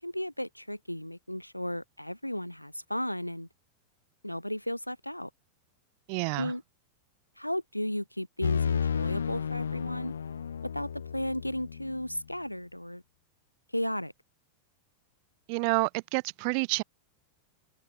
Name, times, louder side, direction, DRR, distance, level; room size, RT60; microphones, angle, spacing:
voice 1, 0.0-3.5 4.2-5.3 6.3-6.6 7.4-10.1 10.7-13.0 13.7-14.1, equal, 90° left, 7.3 m, -34 dB
voice 2, 6.1-6.5 15.5-16.8, right 40 dB or more, 45° right, 5.4 m, -29 dB
sound 1, 8.4-12.2, left 7 dB, 70° left, 3.7 m, -32 dB
figure-of-eight pair, 90°, 0 cm